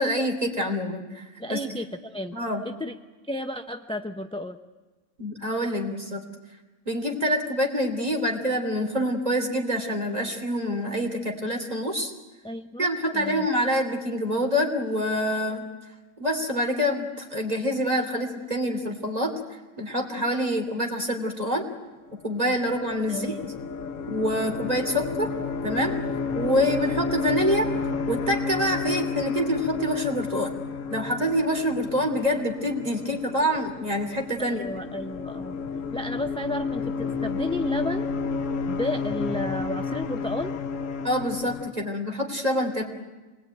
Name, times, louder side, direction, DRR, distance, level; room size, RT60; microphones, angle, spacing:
voice 1, 0.0-1.6 2.3-2.6 5.2-6.2 6.8-12.1 12.8-15.7 16.2-21.7 22.2-23.3 24.1-25.3 25.6-26.0 26.3-27.7 28.1-30.5 30.9-34.6 41.0-42.8, equal, 25° right, 4 dB, 3.2 m, -26 dB
voice 2, 1.4-2.4 2.6-2.9 3.3-4.6 12.4-12.9 13.1-13.5 23.1-23.5 34.4-35.6 35.9-38.1 38.7-40.5 41.8-41.9, left 1 dB, 5° left, 7 dB, 0.6 m, -32 dB
sound 1, 22.2-41.7, left 5 dB, 65° left, 1.5 m, -31 dB
26.5 x 20.5 x 9.3 m, 1.2 s
omnidirectional pair, 1.5 m